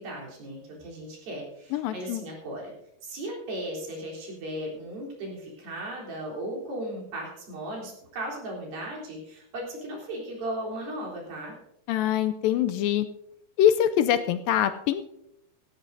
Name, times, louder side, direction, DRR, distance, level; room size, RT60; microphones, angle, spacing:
voice 1, 0.0-2.7 3.0-11.6, right 1 dB, 70° right, -3 dB, 5.6 m, -36 dB
voice 2, 1.7-2.2 11.9-13.1 13.6-15.0, left 10 dB, 80° left, 10 dB, 2.2 m, -24 dB
16.5 x 16.0 x 2.7 m, 0.80 s
omnidirectional pair, 4.3 m